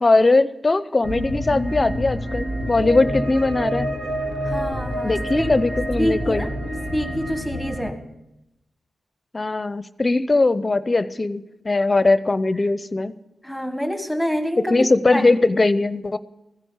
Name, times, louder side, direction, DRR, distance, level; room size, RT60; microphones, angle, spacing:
voice 1, 0.0-3.9 5.0-6.5 9.3-13.1 14.6-16.2, left 2 dB, 35° left, 14 dB, 0.7 m, -20 dB
sound 1, 1.0-7.9, equal, 65° right, 1.9 m, -28 dB
voice 2, 4.4-5.7 6.0-6.5 6.9-8.0 13.4-14.9 15.1-15.2, equal, ahead, 6 dB, 1.7 m, -26 dB
16.0 x 9.9 x 8.1 m, 0.89 s
supercardioid pair, 40°, 0 cm